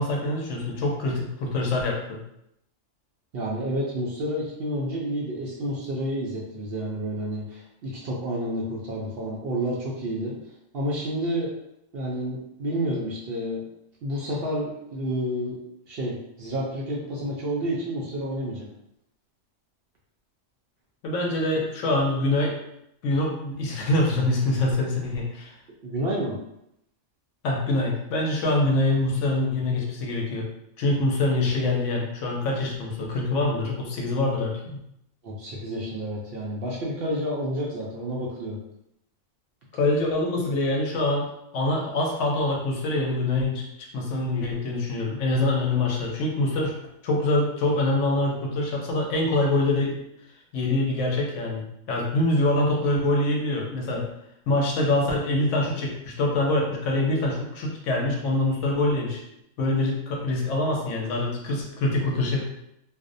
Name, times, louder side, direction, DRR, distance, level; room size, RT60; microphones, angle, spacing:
voice 1, 0.0-2.2 21.0-22.5 23.0-25.5 27.4-30.5 30.8-34.8 39.7-41.3 41.5-46.7 47.0-49.9 50.5-54.1 54.5-59.2 59.6-62.4, left 2 dB, 75° left, -1 dB, 0.9 m, -25 dB
voice 2, 3.3-10.3 10.7-11.5 11.9-13.6 14.0-15.6 15.9-18.7 25.8-26.3 35.2-38.6, equal, 65° right, -4 dB, 0.6 m, -30 dB
2.5 x 2.0 x 2.5 m, 0.79 s
omnidirectional pair, 1.3 m